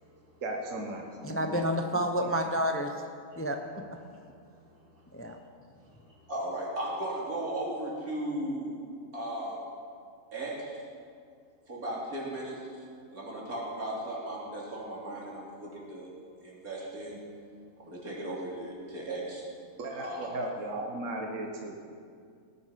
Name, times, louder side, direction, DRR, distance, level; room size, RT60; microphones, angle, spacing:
voice 1, 0.4-1.7 19.8-21.7, right 2 dB, 65° right, 0 dB, 1.5 m, -36 dB
voice 2, 1.2-2.9 3.4-3.6 5.1-5.4, equal, 15° left, 4 dB, 0.6 m, -29 dB
voice 3, 6.1-8.8 9.1-9.6 10.3-10.8 11.7-12.8 13.1-16.1 16.4-17.2 17.8-19.4 19.9-20.4, right 1 dB, 85° right, -5 dB, 3.6 m, -36 dB
18.0 x 9.7 x 5.8 m, 2.3 s
omnidirectional pair, 1.5 m